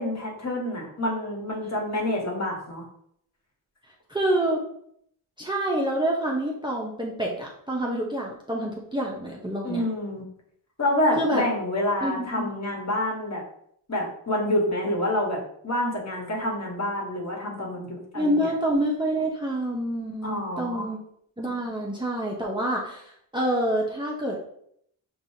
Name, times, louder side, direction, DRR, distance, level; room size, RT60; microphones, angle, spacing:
voice 1, 0.0-2.9 9.6-10.3 10.8-13.4 13.9-18.5 20.2-20.9, left 1 dB, 35° left, -1 dB, 1.4 m, -27 dB
voice 2, 4.1-4.6 5.4-9.8 11.2-11.4 12.0-12.5 18.1-21.0 21.4-24.4, right 1 dB, 10° right, -2 dB, 0.8 m, -27 dB
5.4 x 2.5 x 2.8 m, 0.70 s
supercardioid pair, 45°, 47 cm